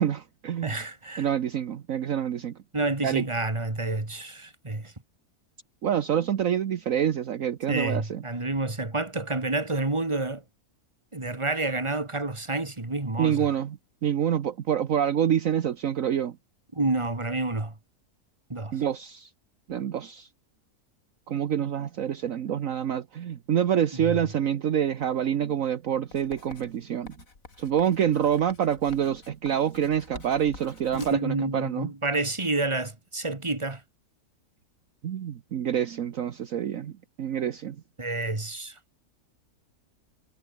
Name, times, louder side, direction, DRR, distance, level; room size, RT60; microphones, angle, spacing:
voice 1, 0.0-0.8 1.2-2.5 3.0-3.3 5.8-8.2 13.2-16.3 18.7-19.3 19.7-20.3 21.3-27.1 27.6-31.9 35.0-36.9 37.2-37.8, right 9 dB, 60° right, 1.3 m, -27 dB
voice 2, 0.6-1.3 2.7-4.9 7.7-10.4 11.1-13.5 16.7-17.7 18.5-18.8 24.0-24.2 30.9-33.8 38.0-38.7, right 2 dB, 20° right, 2.4 m, -29 dB
Writing, 26.1-31.3, left 4 dB, 60° left, 3.5 m, -48 dB
omnidirectional pair, 1.6 m